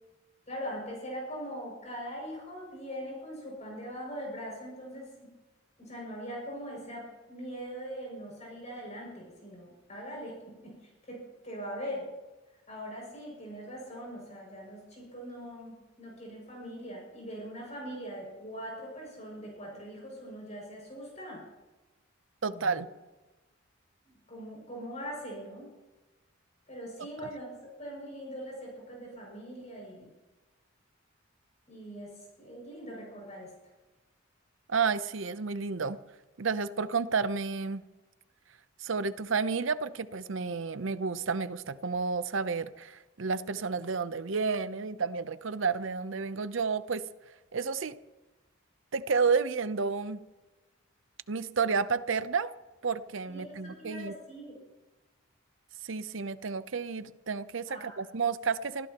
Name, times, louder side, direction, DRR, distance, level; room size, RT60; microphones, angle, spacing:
voice 1, 0.5-5.3 5.8-12.1 12.7-21.4 22.5-22.9 24.3-25.7 26.7-30.1 31.7-33.5 53.3-54.6 57.7-58.0, equal, 35° left, 6.4 m, -42 dB
voice 2, 22.4-22.9 34.7-36.0 36.4-37.9 38.8-47.1 47.5-48.0 48.9-50.2 51.3-52.5 52.8-54.1 55.8-58.9, right 5 dB, 65° right, 0.7 m, -31 dB
25.0 x 14.5 x 3.0 m
head